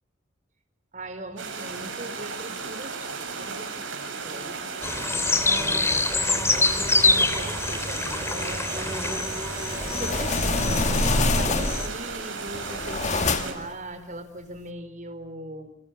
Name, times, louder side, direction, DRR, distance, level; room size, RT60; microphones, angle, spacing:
voice 1, 0.9-4.6 5.5-9.2 9.9-15.8, right 1 dB, 40° right, 7 dB, 4.6 m, -40 dB
sound 1, 1.4-13.5, right 4 dB, 70° right, 7.4 m, -35 dB
sound 2, 4.8-11.9, left 3 dB, 15° left, 3.0 m, -26 dB
sound 3, 9.5-12.0 12.5-13.7, left 3 dB, 35° left, 1.7 m, -25 dB
29.5 x 26.5 x 7.7 m, 0.67 s
head